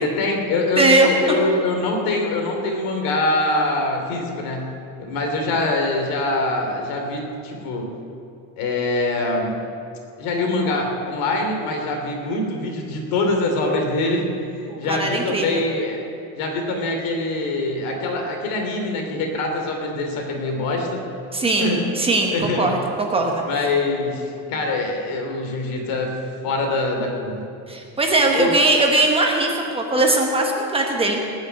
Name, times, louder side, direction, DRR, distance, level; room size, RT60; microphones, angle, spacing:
voice 1, 0.0-4.7 5.0-7.9 8.6-9.5 10.2-14.3 14.8-16.0 16.3-21.0 21.4-21.8 22.3-22.8 23.4-27.4 28.4-28.5, left 2 dB, 65° left, 2 dB, 2.8 m, -24 dB
voice 2, 0.8-1.4 14.7-15.6 21.3-21.7 22.0-23.4 27.7-31.2, right 2 dB, 15° right, 1 dB, 1.1 m, -20 dB
19.0 x 6.4 x 9.2 m, 2.6 s
cardioid pair, 175°, 38 cm